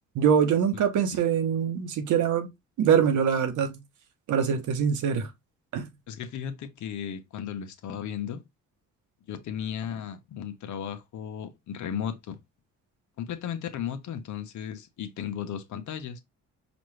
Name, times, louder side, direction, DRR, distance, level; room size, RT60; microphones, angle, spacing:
voice 1, 0.1-2.5 2.8-3.8 4.3-5.3 5.7-5.9, right 7 dB, 80° right, 1.0 m, -24 dB
voice 2, 6.1-8.4 9.3-12.4 13.2-16.2, left 9 dB, 70° left, 0.9 m, -35 dB
5.1 x 2.6 x 3.2 m
cardioid pair, 90°, 30 cm